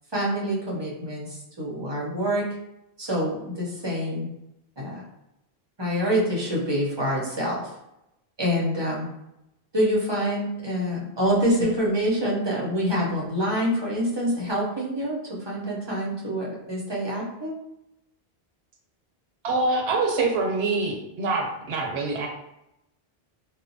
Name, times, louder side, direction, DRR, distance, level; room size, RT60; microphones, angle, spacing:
voice 1, 0.1-2.4 3.0-4.3 4.8-5.0 5.8-7.7 8.4-9.1 9.7-15.2 15.5-17.6, equal, 35° right, -5 dB, 0.5 m, -26 dB
voice 2, 19.4-22.3, right 3 dB, 90° right, 1 dB, 0.9 m, -25 dB
2.8 x 2.0 x 2.6 m, 0.87 s
omnidirectional pair, 1.1 m